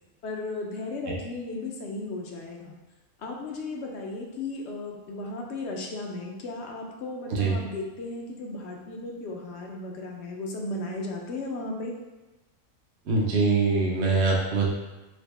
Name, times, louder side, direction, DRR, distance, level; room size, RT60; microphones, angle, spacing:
voice 1, 0.2-2.8 3.2-11.9, left 2 dB, 65° left, 0 dB, 0.7 m, -35 dB
voice 2, 13.1-14.7, right 4 dB, 60° right, -3 dB, 0.8 m, -23 dB
4.1 x 2.0 x 3.2 m, 1.1 s
omnidirectional pair, 1.5 m